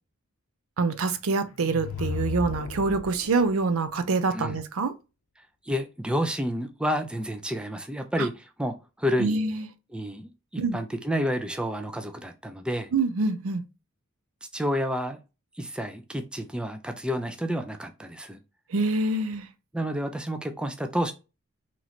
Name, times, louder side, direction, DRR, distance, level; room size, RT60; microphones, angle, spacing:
voice 1, 0.8-4.9 8.2-8.3 9.2-9.7 10.6-10.8 12.9-13.6 18.7-19.5, right 3 dB, 75° right, 0.5 m, -26 dB
sound 1, 1.5-3.5, left 5 dB, 90° left, 0.5 m, -34 dB
voice 2, 5.7-9.4 9.9-12.9 14.5-15.2 15.6-18.4 19.7-21.1, equal, 5° right, 0.4 m, -30 dB
3.0 x 3.0 x 4.0 m
head